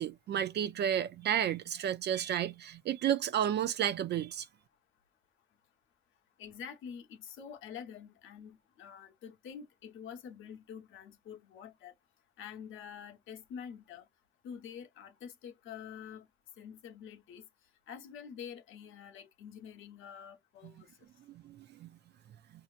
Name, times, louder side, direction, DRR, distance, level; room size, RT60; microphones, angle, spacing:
voice 1, 0.0-4.5 21.4-21.9, right 10 dB, 60° right, 0.4 m, -32 dB
voice 2, 6.4-11.9 12.4-14.1 14.4-16.3 16.6-17.4 17.9-20.9, left 7 dB, 80° left, 1.0 m, -47 dB
5.0 x 2.8 x 2.4 m
cardioid pair, 90°, 20 cm